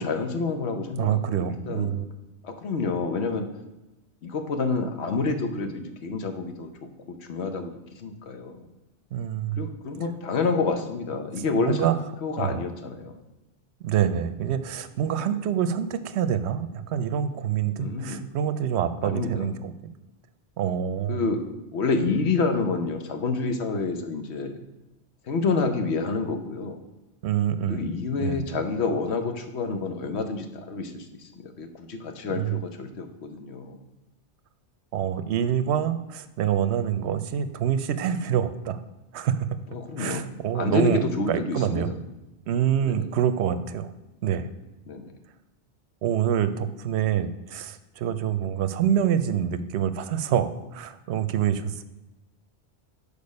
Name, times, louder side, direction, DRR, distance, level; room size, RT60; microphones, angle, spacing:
voice 1, 0.0-1.9 2.4-3.5 4.2-6.7 7.1-8.7 9.6-13.2 15.2-15.4 17.8-18.3 19.0-19.5 21.1-24.6 25.2-26.8 27.7-33.8 39.7-40.2 40.5-42.0 42.8-43.1 44.9-45.1, left 4 dB, 70° left, 6 dB, 1.1 m, -28 dB
voice 2, 1.0-2.1 9.1-9.7 11.6-12.0 12.4-12.5 13.8-19.7 20.6-21.2 27.2-27.8 28.2-28.4 32.3-32.6 34.9-38.8 39.1-39.5 40.0-41.0 41.3-41.9 42.5-43.9 44.2-44.5 46.0-51.8, right 9 dB, 75° right, 12 dB, 0.8 m, -26 dB
6.8 x 5.0 x 5.2 m, 1.0 s
omnidirectional pair, 1.2 m